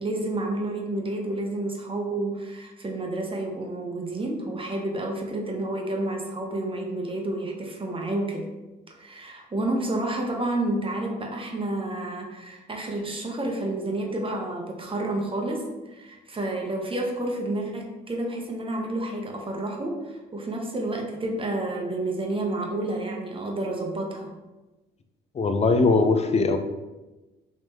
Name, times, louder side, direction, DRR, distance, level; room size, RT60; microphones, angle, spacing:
voice 1, 0.0-8.5 8.9-24.3, right 2 dB, 25° right, 0 dB, 0.8 m, -30 dB
voice 2, 25.3-26.6, left 3 dB, 30° left, 8 dB, 0.5 m, -20 dB
3.5 x 3.0 x 2.9 m, 1.1 s
supercardioid pair, 70°, 21 cm